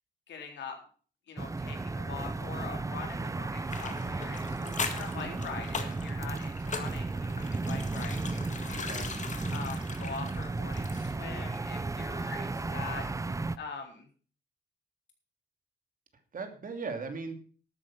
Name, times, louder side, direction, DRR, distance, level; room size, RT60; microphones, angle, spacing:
voice 1, 0.3-0.8 1.3-8.4 8.7-9.0 9.5-13.1 13.6-14.1, left 5 dB, 80° left, 3 dB, 4.0 m, -43 dB
sound 1, 1.4-13.6, right 3 dB, 15° right, 0.6 m, -34 dB
sound 2, 3.7-11.3 11.5-11.6, left 5 dB, 40° left, 1.9 m, -40 dB
voice 2, 8.7-9.1 16.3-17.3, right 4 dB, 50° right, 6 dB, 2.7 m, -38 dB
12.5 x 8.8 x 5.9 m, 0.41 s
cardioid pair, 95°, 18 cm